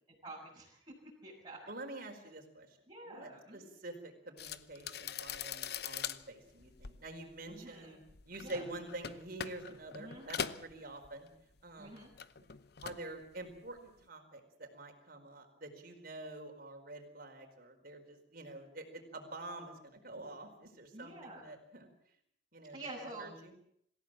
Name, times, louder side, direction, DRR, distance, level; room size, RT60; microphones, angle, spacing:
voice 1, 0.1-0.8 1.2-1.6 2.9-3.7 7.5-8.0 8.4-8.6 10.0-10.4 11.8-12.1 20.9-21.4 22.7-23.3, right 2 dB, 25° right, -7 dB, 7.5 m, -48 dB
voice 2, 1.7-2.8 3.0-8.0 8.2-11.3 11.6-12.0 12.8-21.9 22.5-22.8 23.2-23.6, right 2 dB, 50° right, 4 dB, 4.8 m, -47 dB
sound 1, 4.4-11.6 11.8-13.1 13.4-13.8, left 8 dB, 55° left, 0.9 m, -43 dB
26.5 x 16.0 x 7.7 m, 0.69 s
head